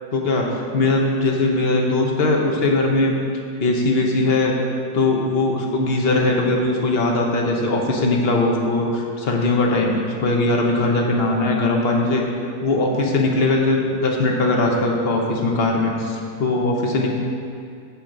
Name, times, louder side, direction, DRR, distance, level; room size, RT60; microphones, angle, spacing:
voice 1, 0.1-0.5 0.7-3.2 3.6-4.5 4.9-12.2 12.6-17.1, left 2 dB, 40° left, 0 dB, 1.1 m, -20 dB
13.5 x 4.5 x 5.2 m, 2.4 s
omnidirectional pair, 1.8 m